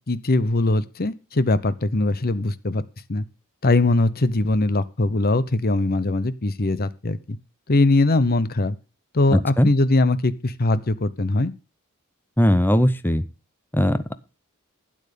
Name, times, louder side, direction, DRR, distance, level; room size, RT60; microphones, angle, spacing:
voice 1, 0.1-2.8 3.1-3.2 3.6-7.4 7.7-8.8 9.1-11.5, left 2 dB, 45° left, 15 dB, 0.9 m, -21 dB
voice 2, 9.3-9.7 12.4-13.2 13.7-14.2, equal, 10° left, 13 dB, 0.8 m, -19 dB
12.0 x 9.1 x 5.2 m, 0.30 s
head